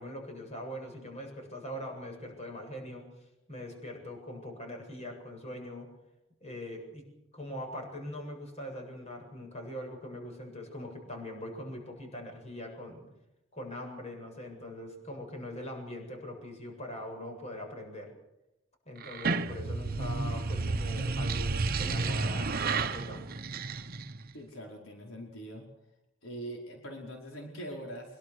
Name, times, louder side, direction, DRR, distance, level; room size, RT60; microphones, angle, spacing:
voice 1, 0.0-3.0 3.5-5.9 6.4-7.0 7.3-13.1 13.5-18.1 18.9-21.5 21.8-23.3, left 1 dB, 35° left, 3 dB, 7.9 m, -42 dB
sound 1, 19.0-24.3, right 3 dB, 50° right, 1.0 m, -31 dB
voice 2, 24.3-25.6 26.2-28.2, right 1 dB, 80° left, 0 dB, 5.1 m, -42 dB
25.0 x 23.0 x 6.4 m, 0.87 s
head